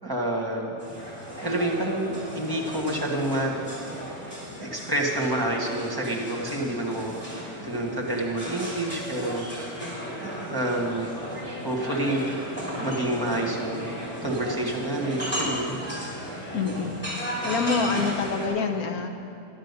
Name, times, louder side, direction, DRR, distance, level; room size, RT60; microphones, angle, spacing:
voice 1, 0.0-0.8 1.4-3.5 4.6-9.5 10.2-11.1 11.6-12.4 12.8-13.9 14.2-15.8, right 1 dB, 15° right, -2 dB, 1.5 m, -28 dB
sound 1, 0.8-18.5, equal, 5° left, 2.8 m, -35 dB
voice 2, 16.5-16.9 17.4-19.1, left 4 dB, 85° left, 5 dB, 1.4 m, -26 dB
11.5 x 8.9 x 6.8 m, 2.7 s
omnidirectional pair, 1.5 m